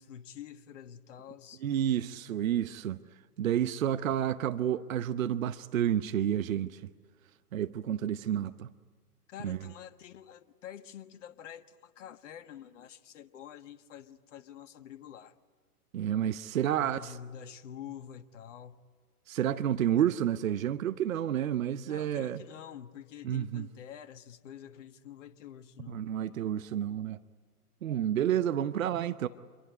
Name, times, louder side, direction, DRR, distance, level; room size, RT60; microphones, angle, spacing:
voice 1, 0.0-1.6 9.3-15.3 16.8-18.8 21.9-26.0, left 9 dB, 50° left, 1.6 m, -47 dB
voice 2, 1.6-3.0 3.4-6.8 7.5-8.7 9.4-9.6 15.9-17.2 19.3-22.4 23.2-23.7 25.9-27.2 27.8-29.3, right 10 dB, 60° right, 0.9 m, -30 dB
27.5 x 23.0 x 9.4 m
figure-of-eight pair, 120°, 46 cm